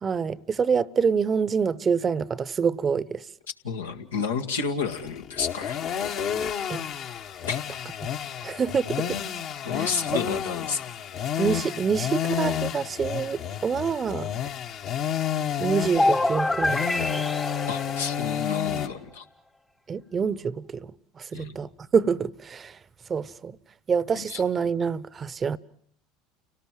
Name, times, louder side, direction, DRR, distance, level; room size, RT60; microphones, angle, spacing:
voice 1, 0.0-3.3 6.7-6.8 8.4-9.2 9.8-9.9 11.4-14.3 15.6-17.2 19.9-22.8 23.1-23.6 23.9-25.6, right 6 dB, 30° right, 0.9 m, -26 dB
voice 2, 3.6-5.8 7.5-7.6 9.6-10.8 17.7-19.2 21.3-21.6 24.3-24.4, left 6 dB, 85° left, 1.8 m, -30 dB
sound 1, 4.8-18.9, left 9 dB, 55° left, 1.6 m, -31 dB
sound 2, 15.9-18.8, left 2 dB, 10° left, 0.9 m, -26 dB
30.0 x 18.5 x 7.6 m
hypercardioid pair, 75°, 0 cm